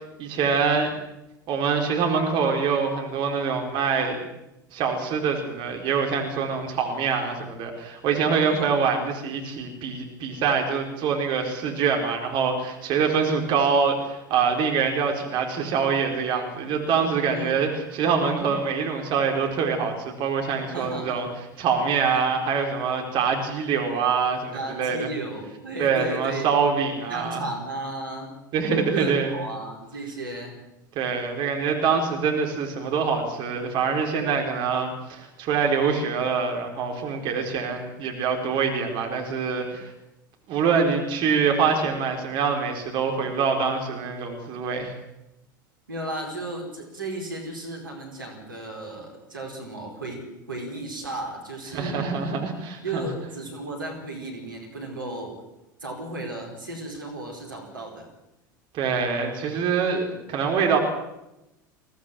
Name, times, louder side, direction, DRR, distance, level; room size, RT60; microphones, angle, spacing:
voice 1, 0.2-0.9 1.5-4.2 4.7-21.3 21.6-25.1 25.8-27.4 28.5-29.3 31.0-39.9 40.5-44.9 51.7-53.1 58.7-60.8, right 5 dB, 45° right, 2 dB, 4.4 m, -25 dB
voice 2, 20.7-21.2 24.5-26.5 27.1-28.3 28.9-30.6 45.9-52.0 52.8-55.4 55.8-58.1 60.1-60.2, right 2 dB, 80° right, 1 dB, 4.8 m, -34 dB
23.0 x 17.5 x 7.7 m, 0.92 s
figure-of-eight pair, 75°, 11 cm